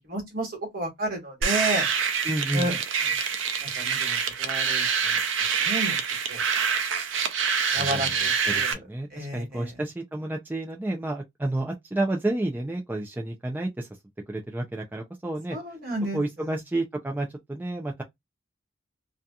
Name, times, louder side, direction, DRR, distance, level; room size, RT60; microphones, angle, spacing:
voice 1, 0.0-1.8 2.5-2.8 3.6-5.2 5.6-6.0 6.3-6.4 7.7-8.8 9.1-9.7 15.5-16.5, right 1 dB, 50° right, 1.4 m, -32 dB
sound 1, 1.4-8.7, right 6 dB, 70° right, 0.5 m, -26 dB
voice 2, 2.2-2.7 7.8-13.9 14.3-15.6 16.1-18.0, right 1 dB, 10° right, 0.4 m, -30 dB
2.7 x 2.3 x 2.3 m
head